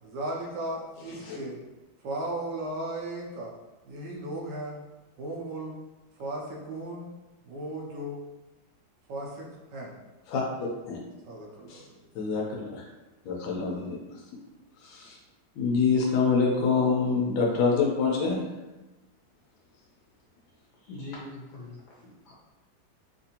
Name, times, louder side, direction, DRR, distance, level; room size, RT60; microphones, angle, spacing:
voice 1, 0.0-1.6 2.0-3.5 3.8-4.8 5.2-5.8 6.2-7.1 7.4-8.2 9.1-10.0 11.3-12.0, right 1 dB, 70° right, -2 dB, 1.2 m, -36 dB
voice 2, 10.3-11.0 11.7-11.8 12.1-12.4 12.7-12.8 13.2-14.0 14.8-15.2 15.6-18.4, left 5 dB, 85° left, -1 dB, 1.5 m, -26 dB
voice 3, 20.8-22.3, left 2 dB, 60° left, -5 dB, 1.4 m, -43 dB
3.6 x 2.6 x 2.8 m, 1.1 s
omnidirectional pair, 2.1 m